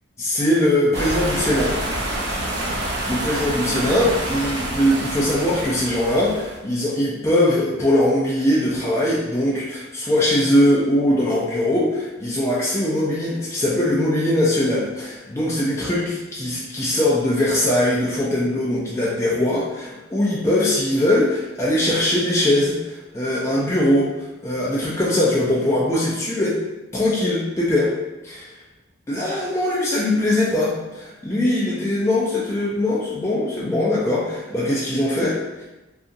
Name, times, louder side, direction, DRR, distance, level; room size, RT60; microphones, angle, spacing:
voice 1, 0.2-1.7 3.1-26.6 26.9-27.9 28.2-28.6 29.1-35.6, left 1 dB, 15° left, -6 dB, 0.4 m, -21 dB
sound 1, 0.9-6.6, right 1 dB, 60° right, 0.5 m, -27 dB
2.7 x 2.5 x 2.5 m, 1.0 s
head